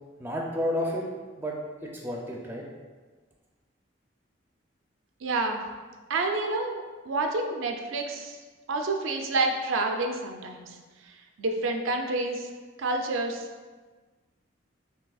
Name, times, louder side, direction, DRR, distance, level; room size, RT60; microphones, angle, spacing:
voice 1, 0.2-1.0 1.4-2.7, equal, 10° right, -2 dB, 0.4 m, -31 dB
voice 2, 5.2-5.6 6.1-8.4 8.7-10.8 11.4-12.5 12.8-13.4, right 2 dB, 85° right, 4 dB, 0.4 m, -28 dB
5.9 x 2.7 x 2.3 m, 1.4 s
head